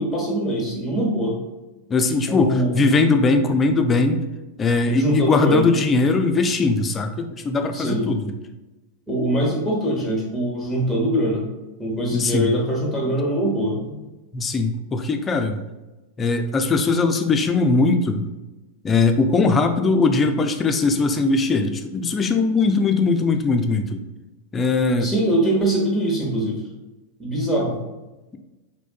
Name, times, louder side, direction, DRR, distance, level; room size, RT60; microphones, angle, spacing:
voice 1, 0.0-1.4 2.3-2.8 4.9-5.7 7.7-8.0 9.1-11.5 11.8-14.0 25.0-26.6 27.2-27.8, right 1 dB, ahead, -3 dB, 0.8 m, -22 dB
voice 2, 1.9-4.2 4.6-8.3 12.1-12.5 14.3-15.6 16.2-18.3 18.8-24.0 24.5-25.1 27.6-27.7, left 3 dB, 20° left, 6 dB, 0.3 m, -20 dB
3.4 x 2.7 x 2.2 m, 1.1 s
figure-of-eight pair, 90°, 0 cm